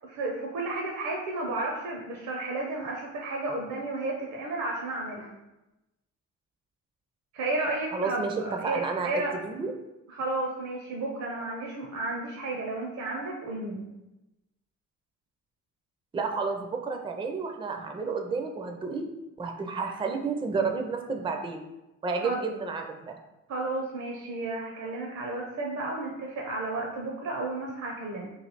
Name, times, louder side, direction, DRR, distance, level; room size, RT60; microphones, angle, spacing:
voice 1, 0.0-5.3 7.3-9.3 9.6-9.7 10.1-13.9 22.2-22.4 23.5-28.3, right 2 dB, 65° right, -1 dB, 0.7 m, -32 dB
voice 2, 7.9-8.3 8.6-9.7 16.1-19.1 19.4-21.7 22.0-23.2, right 4 dB, 15° right, 3 dB, 0.4 m, -31 dB
3.2 x 2.7 x 4.0 m, 0.97 s
cardioid pair, 90°, 30 cm